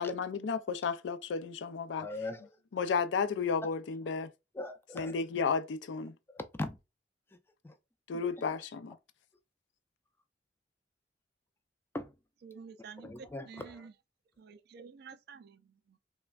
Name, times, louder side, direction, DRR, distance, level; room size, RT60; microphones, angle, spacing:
voice 1, 0.0-2.1 2.7-4.3 4.9-6.1 8.1-9.0, left 5 dB, 80° left, 0.4 m, -33 dB
voice 2, 2.0-2.5 4.5-5.1 6.3-6.8 7.6-7.7 11.9-12.1 13.0-13.9, left 2 dB, 15° left, 0.3 m, -39 dB
voice 3, 12.4-13.9 14.4-16.0, right 5 dB, 60° right, 0.3 m, -50 dB
3.2 x 2.1 x 2.2 m
head